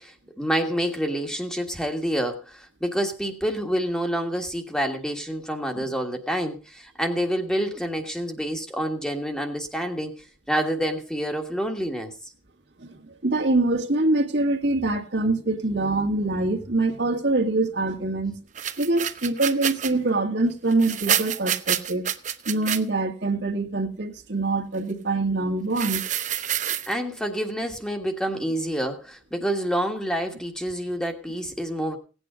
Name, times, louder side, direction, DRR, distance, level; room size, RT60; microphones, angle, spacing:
voice 1, 0.0-10.1 10.5-12.1 26.9-32.0, equal, 5° left, 1.5 m, -28 dB
voice 2, 12.8-18.4 18.8-22.1 22.5-26.0, right 2 dB, 65° right, 1.9 m, -24 dB
sound 1, 18.5-19.9 20.7-22.8 25.7-26.9, right 10 dB, 40° right, 0.7 m, -27 dB
17.0 x 9.0 x 5.0 m
head